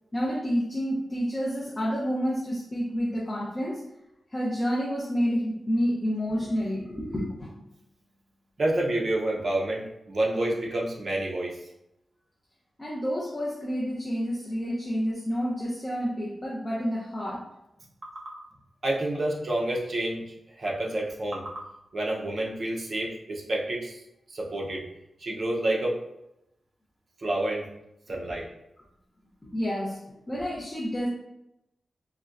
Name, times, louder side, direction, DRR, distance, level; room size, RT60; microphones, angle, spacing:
voice 1, 0.1-3.8 4.3-7.5 12.8-17.5 28.2-28.4 29.4-30.0 30.3-31.1, equal, 20° left, -6 dB, 0.6 m, -29 dB
voice 2, 8.6-11.6 18.2-18.3 18.8-21.6 21.9-24.0 24.3-24.9 25.2-26.0 27.2-27.7 28.1-28.5, right 1 dB, 50° right, -2 dB, 0.6 m, -29 dB
4.0 x 2.2 x 2.4 m, 0.86 s
wide cardioid pair, 140°, 0 cm